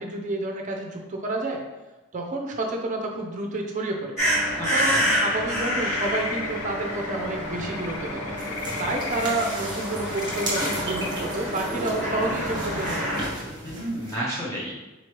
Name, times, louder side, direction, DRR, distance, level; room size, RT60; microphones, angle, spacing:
voice 1, 0.0-1.6 2.1-4.2 4.7-8.3 8.8-13.2, right 2 dB, 35° right, 1 dB, 0.5 m, -29 dB
sound 1, 4.2-13.3, equal, 30° left, 1.2 m, -28 dB
voice 2, 4.6-5.1 13.6-14.7, right 1 dB, 15° left, -7 dB, 0.6 m, -31 dB
sound 2, 4.9-10.8, left 5 dB, 65° left, 0.4 m, -37 dB
sound 3, 8.4-14.1, right 1 dB, 20° right, 1.0 m, -35 dB
4.1 x 3.1 x 3.0 m, 1.1 s
head